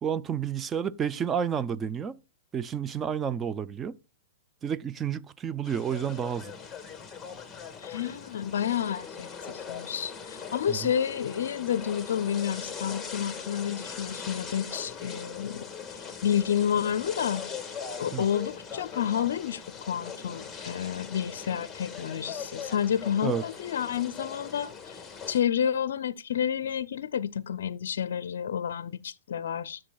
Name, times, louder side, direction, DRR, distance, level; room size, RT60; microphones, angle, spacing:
voice 1, 0.0-2.2 2.5-4.0 4.6-6.5 10.7-10.9 18.1-18.2 23.2-23.4, right 8 dB, 20° right, 0.4 m, -30 dB
sound 1, 5.6-25.4, left 6 dB, 10° left, 1.6 m, -40 dB
voice 2, 7.8-15.7 16.0-17.4 18.0-25.0 25.3-29.8, left 9 dB, 70° left, 0.4 m, -30 dB
12.5 x 7.5 x 2.3 m
hypercardioid pair, 125°, 0 cm